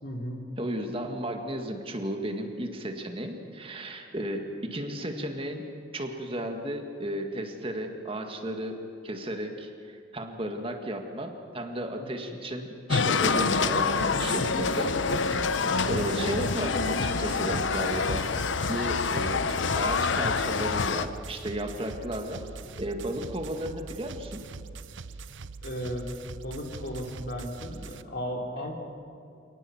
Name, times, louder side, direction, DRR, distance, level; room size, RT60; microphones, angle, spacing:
voice 1, 0.0-0.5 12.0-12.1 15.6-16.0 25.6-26.1 26.4-28.7, equal, 55° left, 2 dB, 3.4 m, -35 dB
voice 2, 0.6-5.6 5.9-8.8 9.0-15.4 15.9-18.2 18.7-19.4 19.8-22.4 22.8-24.4, right 1 dB, 30° right, 4 dB, 1.9 m, -34 dB
sound 1, 12.9-21.1, left 4 dB, 90° left, 0.9 m, -26 dB
sound 2, 14.0-28.0, right 4 dB, 90° right, 0.8 m, -43 dB
27.5 x 19.5 x 7.2 m, 2.5 s
head